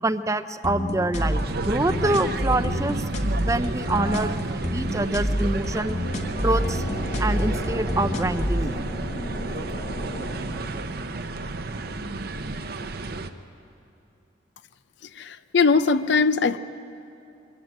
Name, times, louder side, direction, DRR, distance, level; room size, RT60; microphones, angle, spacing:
voice 1, 0.0-3.0 3.4-6.0 6.4-6.8 7.2-8.8, right 2 dB, 15° right, 11 dB, 0.5 m, -26 dB
sound 1, 0.6-8.6, equal, 35° left, 1.5 m, -28 dB
sound 2, 1.2-13.3, right 2 dB, 50° right, 0.8 m, -32 dB
sound 3, 4.6-10.6, equal, 85° left, 6.9 m, -36 dB
voice 2, 15.5-16.6, left 4 dB, 65° left, 13 dB, 0.6 m, -20 dB
24.0 x 15.5 x 9.0 m, 2.7 s
head